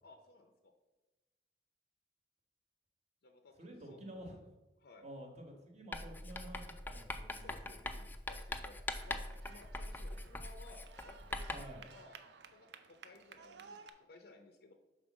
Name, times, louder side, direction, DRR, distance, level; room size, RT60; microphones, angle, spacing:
voice 1, 0.0-0.7 3.2-4.0 4.8-5.0 7.4-11.5 11.9-12.2 12.5-12.7 13.0-13.8 14.1-14.7, left 3 dB, 65° left, 5 dB, 0.6 m, -58 dB
voice 2, 3.6-4.4 5.0-7.7 11.5-11.8, right 1 dB, 40° right, 2 dB, 1.3 m, -50 dB
Writing, 5.9-11.8, left 2 dB, 10° left, 0.3 m, -43 dB
Manifestacion feminista, 8.9-13.9, right 6 dB, 70° right, 0.5 m, -57 dB
5.3 x 4.0 x 6.0 m, 1.1 s
head